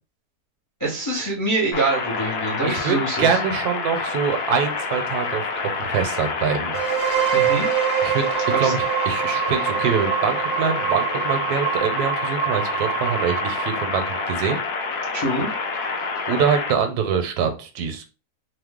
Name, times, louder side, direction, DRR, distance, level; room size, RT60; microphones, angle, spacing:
voice 1, 0.8-3.4 7.3-7.7 8.5-8.7 15.1-15.5, right 2 dB, 20° left, -4 dB, 0.5 m, -25 dB
sound 1, 1.7-16.7, left 4 dB, 75° left, 1.1 m, -28 dB
voice 2, 2.7-5.4 5.9-6.8 8.0-8.2 8.6-14.6 16.3-18.1, right 6 dB, 75° right, 6 dB, 1.1 m, -24 dB
sound 2, 6.7-14.5, right 11 dB, 60° right, 0.7 m, -25 dB
2.9 x 2.0 x 3.4 m, 0.31 s
omnidirectional pair, 1.7 m